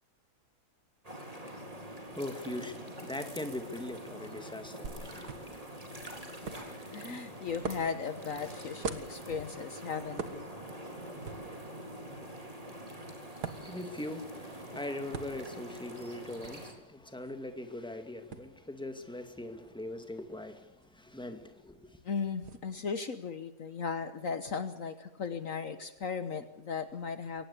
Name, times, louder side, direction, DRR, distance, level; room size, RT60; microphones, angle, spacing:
sound 1, 1.0-16.7, right 1 dB, 20° right, 4.1 m, -45 dB
voice 1, 1.9-5.6 13.4-22.0, left 1 dB, 5° left, 2.1 m, -41 dB
sound 2, 4.8-22.6, right 5 dB, 80° right, 2.2 m, -47 dB
voice 2, 6.9-10.5 22.0-27.5, left 5 dB, 60° left, 1.5 m, -37 dB
23.0 x 19.0 x 8.3 m
omnidirectional pair, 1.7 m